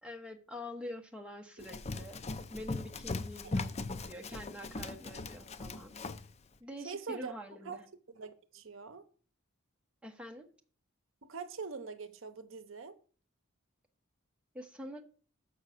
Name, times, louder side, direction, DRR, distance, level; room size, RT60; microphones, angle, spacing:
voice 1, 0.0-3.7 4.1-5.9 6.6-7.9 10.0-10.5 14.5-15.0, left 1 dB, 5° right, 1.1 m, -46 dB
Run, 1.6-6.3, left 3 dB, 30° left, 0.5 m, -39 dB
voice 2, 6.8-7.3 7.6-7.8 8.1-9.0 11.2-13.0, right 5 dB, 70° right, 0.7 m, -43 dB
6.8 x 5.7 x 6.5 m
head